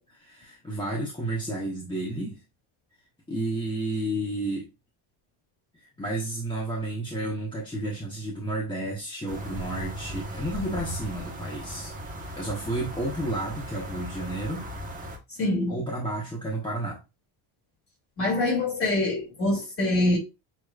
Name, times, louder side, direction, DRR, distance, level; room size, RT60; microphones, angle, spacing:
voice 1, 0.2-2.4 3.3-4.7 6.0-11.9 12.2-14.7 15.7-17.0, right 1 dB, 10° left, 1.1 m, -31 dB
sound 1, 9.3-15.2, right 1 dB, 15° right, 1.1 m, -37 dB
voice 2, 15.4-15.8 18.2-20.2, left 2 dB, 30° left, 2.5 m, -25 dB
6.9 x 3.1 x 2.3 m
cardioid pair, 140°, 48 cm